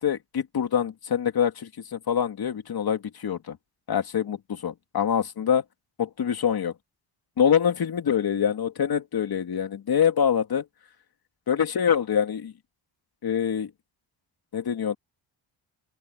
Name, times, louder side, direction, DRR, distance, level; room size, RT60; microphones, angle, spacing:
voice 1, 0.0-3.6 3.9-5.6 6.0-6.7 7.4-10.6 11.5-12.5 13.2-13.7 14.5-15.0, left 8 dB, 50° left, 2.5 m, -25 dB
open air
cardioid pair, 115°, 47 cm